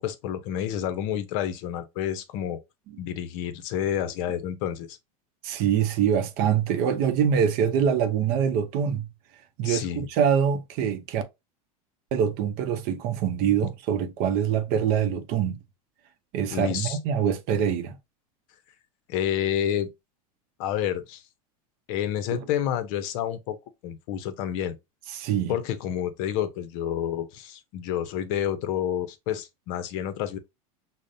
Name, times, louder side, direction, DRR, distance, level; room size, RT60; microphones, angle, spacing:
voice 1, 0.0-2.6 3.0-5.0 9.6-10.1 16.5-17.0 19.1-19.9 20.6-21.2 21.9-23.6 23.8-24.8 25.5-30.4, left 10 dB, 60° left, 0.6 m, -29 dB
voice 2, 5.4-9.1 9.6-11.2 12.1-15.6 16.3-18.0 22.3-22.4 25.1-25.6, right 8 dB, 50° right, 0.6 m, -24 dB
5.1 x 2.1 x 2.6 m
supercardioid pair, 120°, 19 cm